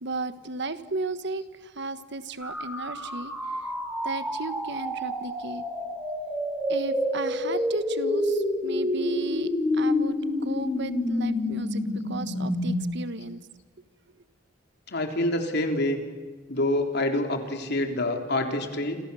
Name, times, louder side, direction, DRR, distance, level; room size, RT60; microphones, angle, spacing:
voice 1, 0.0-3.3 4.0-5.6 6.7-10.2 10.4-13.4, right 2 dB, 65° right, 12 dB, 1.4 m, -35 dB
sound 1, 2.4-12.7, left 1 dB, 5° right, 4.0 m, -28 dB
voice 2, 14.9-16.0 16.5-19.0, left 1 dB, 60° left, 4 dB, 3.6 m, -26 dB
29.0 x 27.0 x 7.1 m, 1.4 s
head